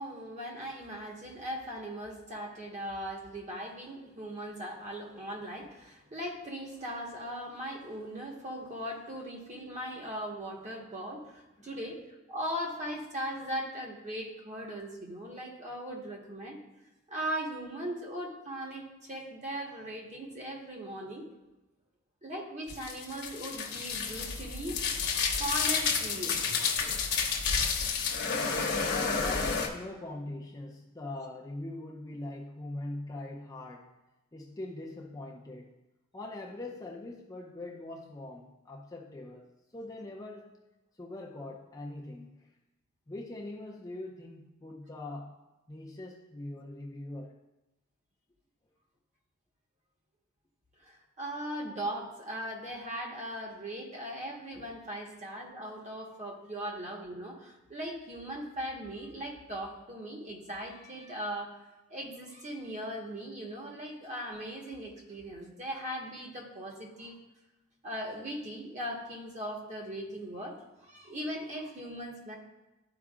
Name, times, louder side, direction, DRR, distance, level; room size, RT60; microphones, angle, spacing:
voice 1, 0.0-12.0 12.3-16.6 17.1-21.3 22.2-24.8 25.4-26.4 50.8-61.6 61.9-67.2 67.8-72.4, equal, 35° right, -1 dB, 1.3 m, -39 dB
sound 1, 22.7-29.7, left 5 dB, 50° left, 1.0 m, -30 dB
voice 2, 28.9-34.0 34.3-35.8 36.1-40.6 41.0-42.5 43.1-45.4 45.7-47.4 55.1-55.2, left 2 dB, 15° left, -2 dB, 0.5 m, -42 dB
12.5 x 4.7 x 2.4 m, 1.0 s
head